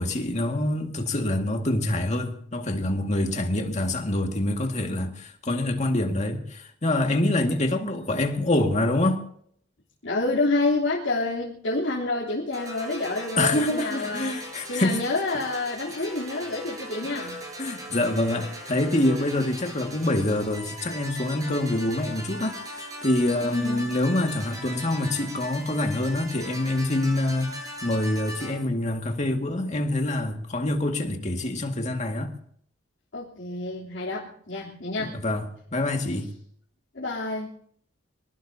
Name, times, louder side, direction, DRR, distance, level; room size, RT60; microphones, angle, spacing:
voice 1, 0.0-9.2 13.4-15.0 16.0-16.1 17.1-27.5 27.8-32.3 35.0-36.3, left 1 dB, 40° left, 2.0 m, -26 dB
voice 2, 10.0-14.3 14.7-17.4 23.4-23.9 33.1-35.2 36.9-37.5, left 2 dB, 75° left, 3.4 m, -28 dB
sound 1, 12.5-28.5, equal, 20° right, 7.2 m, -39 dB
25.0 x 19.0 x 2.8 m
head